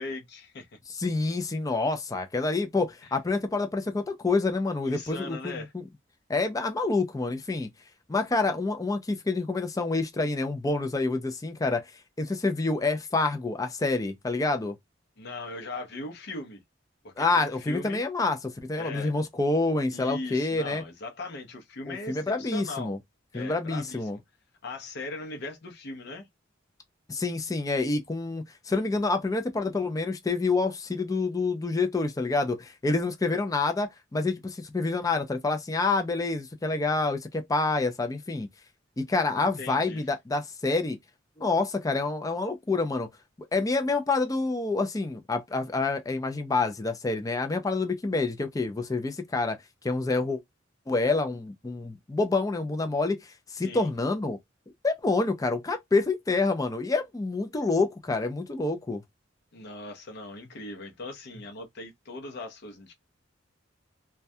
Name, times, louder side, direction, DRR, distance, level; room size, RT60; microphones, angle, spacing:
voice 1, 0.0-0.8 3.0-3.2 4.8-5.7 15.2-16.6 17.0-18.0 18.8-19.1 19.9-22.9 23.3-24.1 24.6-26.3 39.4-40.1 53.6-53.9 59.5-62.9, left 2 dB, 60° left, 0.6 m, -39 dB
voice 2, 1.0-5.8 6.3-7.7 8.1-11.8 12.2-14.7 17.2-20.8 21.9-23.0 23.3-24.2 27.1-38.5 39.0-41.0 41.4-43.1 43.5-49.6 49.8-50.4 50.9-54.4 54.8-59.0, left 3 dB, 20° left, 0.4 m, -27 dB
2.2 x 2.2 x 2.6 m
head